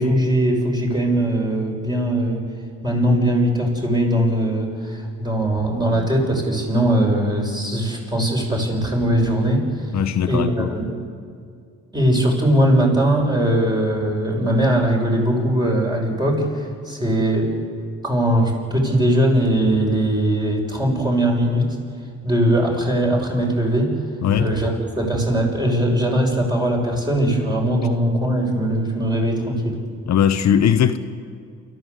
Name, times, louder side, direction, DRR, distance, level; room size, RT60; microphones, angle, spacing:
voice 1, 0.0-2.4 2.8-9.9 10.3-10.9 11.9-17.5 18.0-21.8 22.2-23.9 24.4-24.7 25.0-29.8, right 1 dB, 15° right, 0 dB, 6.5 m, -20 dB
voice 2, 9.9-10.7 24.2-24.5 30.1-31.0, left 9 dB, 65° left, 8 dB, 1.1 m, -19 dB
28.5 x 13.5 x 8.2 m, 2.2 s
cardioid pair, 90°, 30 cm